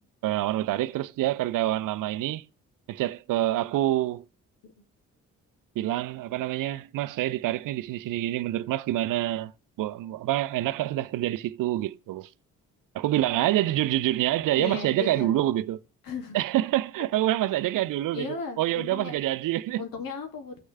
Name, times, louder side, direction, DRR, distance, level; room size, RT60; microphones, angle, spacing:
voice 1, 0.2-2.5 2.9-4.2 5.8-9.5 9.8-12.3 12.9-15.8 16.3-19.8, right 14 dB, 55° right, 0.5 m, -27 dB
voice 2, 14.5-15.4 16.0-16.4 17.4-17.5 18.1-19.1 19.8-20.6, left 5 dB, 60° left, 2.3 m, -36 dB
14.5 x 6.3 x 3.3 m
hypercardioid pair, 40°, 38 cm